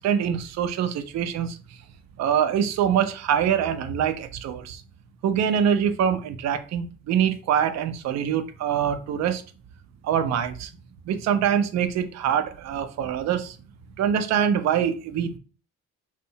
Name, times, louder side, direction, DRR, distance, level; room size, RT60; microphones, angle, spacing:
voice 1, 0.0-1.6 2.2-4.8 5.2-9.4 10.0-10.7 11.1-13.6 14.0-15.4, right 8 dB, 60° right, 0.4 m, -24 dB
2.6 x 2.1 x 2.7 m
cardioid pair, 90°, 30 cm